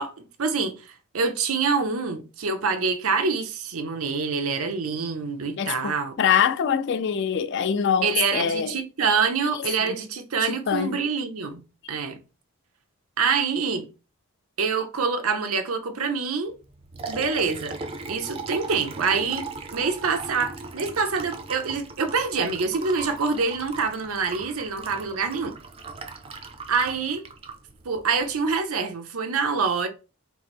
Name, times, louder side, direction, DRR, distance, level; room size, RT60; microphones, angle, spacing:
voice 1, 0.0-6.2 8.0-11.6 11.9-12.2 13.2-13.9 14.6-16.6 17.1-17.8 18.1-25.5 26.7-27.2 27.8-29.9, right 5 dB, 85° right, 0.7 m, -26 dB
voice 2, 5.6-8.7 10.5-11.0, left 8 dB, 55° left, 0.3 m, -24 dB
Liquid, 16.6-28.5, right 3 dB, 25° right, 0.4 m, -38 dB
4.6 x 2.0 x 4.2 m
head